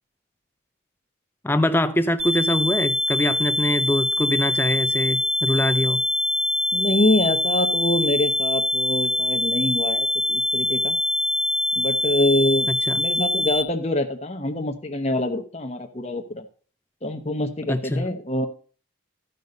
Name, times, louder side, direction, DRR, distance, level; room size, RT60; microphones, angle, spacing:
voice 1, 1.4-6.0 12.7-13.0 17.7-18.1, left 1 dB, 10° left, 0.5 m, -23 dB
sound 1, 2.2-13.6, left 1 dB, 30° right, 0.9 m, -24 dB
voice 2, 6.7-11.0 11.8-12.7 13.0-16.4 17.0-18.5, left 1 dB, 35° left, 0.9 m, -25 dB
12.5 x 5.5 x 5.3 m
head